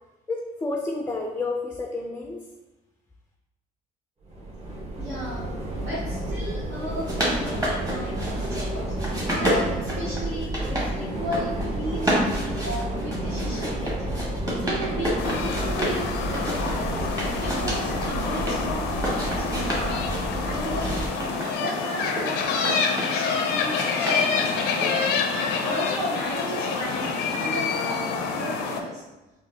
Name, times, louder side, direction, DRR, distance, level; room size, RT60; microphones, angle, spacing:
voice 1, 0.3-2.5, left 3 dB, 15° left, 1 dB, 0.3 m, -30 dB
sound 1, 4.2-21.1, right 1 dB, 40° right, 1.2 m, -31 dB
voice 2, 5.0-8.9 9.3-16.9 17.4-20.0 20.4-21.0 21.3-24.6 25.3-29.0, equal, 70° right, -7 dB, 1.0 m, -35 dB
sound 2, 6.8-8.7 9.0-10.9 11.2-11.7 12.0-16.0 16.3-18.6 18.9-20.2 20.7-23.2 23.7-25.2, equal, 20° right, 1.2 m, -30 dB
sound 3, 15.2-28.8, left 5 dB, 85° left, 0.5 m, -27 dB
4.0 x 2.4 x 2.7 m, 1.1 s
cardioid pair, 90°, 18 cm